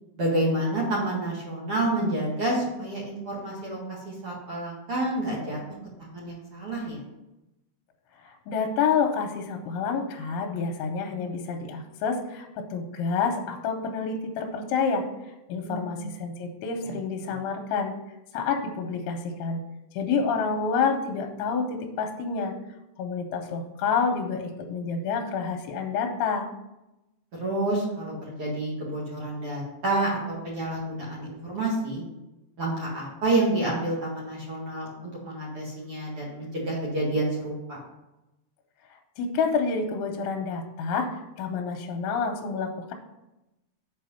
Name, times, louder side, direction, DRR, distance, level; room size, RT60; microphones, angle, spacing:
voice 1, 0.2-5.6 6.0-7.0 15.6-16.1 16.8-16.9 27.3-28.1 28.4-32.0 32.6-37.8, right 2 dB, 50° right, -5 dB, 1.8 m, -29 dB
voice 2, 8.2-15.0 15.5-17.9 18.3-19.6 20.0-22.5 23.0-26.5 39.2-41.1 41.4-42.9, left 5 dB, 80° left, 4 dB, 2.9 m, -28 dB
7.9 x 4.8 x 5.6 m, 0.95 s
omnidirectional pair, 5.6 m